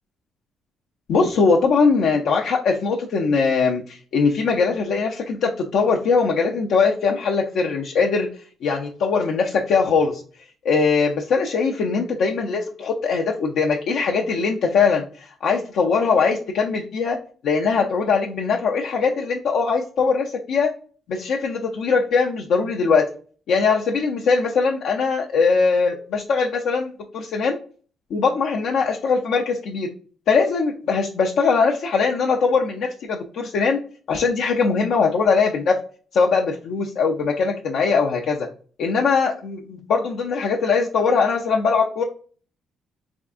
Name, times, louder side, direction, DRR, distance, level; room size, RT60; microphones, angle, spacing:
voice 1, 1.1-8.3 8.6-10.2 10.6-17.2 17.4-20.7 21.1-23.0 23.5-27.6 28.1-29.9 30.3-33.8 34.1-35.7 36.1-38.5 38.8-42.0, left 5 dB, 75° left, -1 dB, 0.4 m, -21 dB
3.5 x 3.5 x 2.4 m, 0.41 s
cardioid pair, 90°, 0 cm